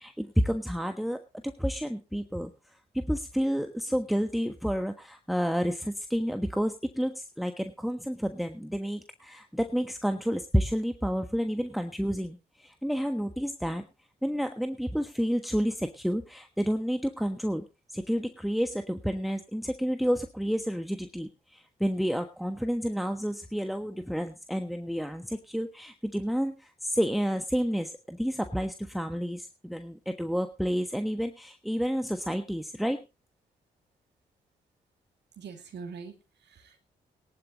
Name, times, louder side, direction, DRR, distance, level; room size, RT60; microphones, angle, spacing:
voice 1, 0.0-13.8 14.2-17.6 17.9-33.0, equal, ahead, 7 dB, 1.3 m, -30 dB
voice 2, 35.4-36.8, right 5 dB, 70° right, 5 dB, 2.5 m, -43 dB
18.0 x 11.5 x 3.0 m, 0.28 s
supercardioid pair, 45°, 19 cm